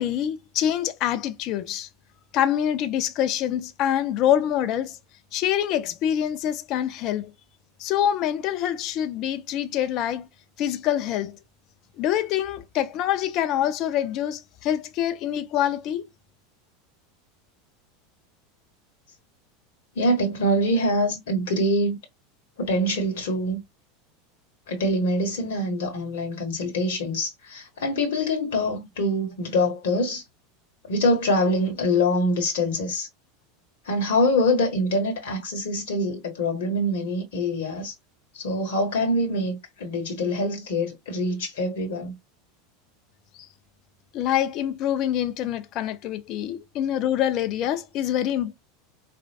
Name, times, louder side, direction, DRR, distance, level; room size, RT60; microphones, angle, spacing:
voice 1, 0.0-1.9 2.3-5.0 5.3-7.3 7.8-10.3 10.6-11.4 12.0-16.0 44.1-48.5, left 10 dB, 45° left, 0.6 m, -25 dB
voice 2, 19.9-22.0 22.6-23.6 24.7-30.2 30.9-33.1 33.8-37.9 38.3-42.1, left 1 dB, 60° left, 1.2 m, -24 dB
4.5 x 2.4 x 2.3 m
figure-of-eight pair, 80°, 0 cm